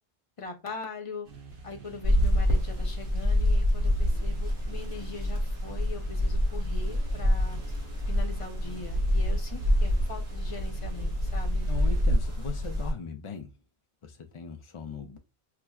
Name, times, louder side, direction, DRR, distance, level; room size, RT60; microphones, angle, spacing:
voice 1, 0.4-1.3 1.6-7.6 8.1-11.7, left 4 dB, 35° left, 0.7 m, -41 dB
sound 1, 1.2-12.0, right 4 dB, 55° right, 1.0 m, -48 dB
sound 2, 2.0-12.9, left 1 dB, 35° right, 1.3 m, -27 dB
voice 2, 11.7-13.5 14.0-15.2, left 6 dB, 55° left, 0.3 m, -39 dB
5.8 x 2.2 x 2.3 m
omnidirectional pair, 1.1 m